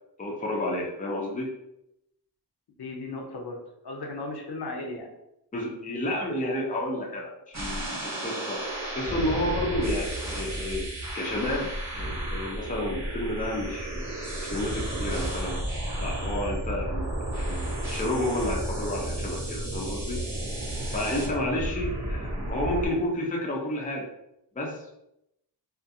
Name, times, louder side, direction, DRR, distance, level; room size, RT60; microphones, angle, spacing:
voice 1, 0.2-1.5 5.5-8.6 8.9-14.1 14.4-15.6 16.0-20.2 20.9-24.1 24.6-25.0, left 1 dB, 20° left, -2 dB, 0.5 m, -31 dB
voice 2, 2.8-3.6 3.8-5.1, left 2 dB, 65° left, 1 dB, 0.6 m, -36 dB
sound 1, 7.5-22.9, right 1 dB, 40° right, 0.8 m, -32 dB
2.4 x 2.4 x 2.6 m, 0.83 s
wide cardioid pair, 95°, 42 cm